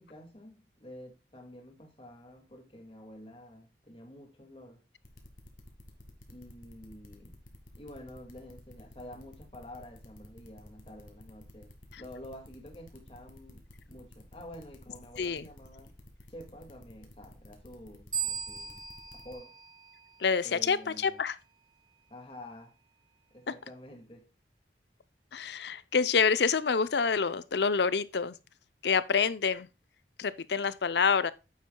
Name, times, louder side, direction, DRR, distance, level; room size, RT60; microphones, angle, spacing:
voice 1, 0.0-4.8 6.3-7.4 7.8-15.9 16.3-18.9 19.1-19.5 20.4-21.2 22.1-22.8 23.3-24.3, left 1 dB, 30° left, 2.0 m, -49 dB
sound 1, 5.0-19.3, left 1 dB, 45° left, 1.8 m, -52 dB
sound 2, 18.1-20.6, right 8 dB, 25° right, 0.9 m, -38 dB
voice 2, 20.2-21.4 25.3-28.4 28.8-29.7 30.2-31.3, left 5 dB, 75° left, 0.6 m, -27 dB
9.1 x 7.5 x 2.2 m
head